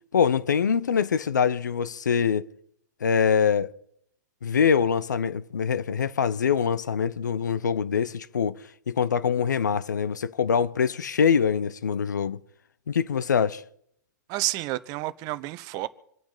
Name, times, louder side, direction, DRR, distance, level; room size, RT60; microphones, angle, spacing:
voice 1, 0.1-2.5 3.0-3.7 4.4-8.6 8.9-12.4 12.9-13.6, left 7 dB, 75° left, 0.9 m, -24 dB
voice 2, 14.3-15.9, right 18 dB, 40° right, 0.9 m, -30 dB
26.5 x 8.9 x 5.6 m
hypercardioid pair, 110°, 10 cm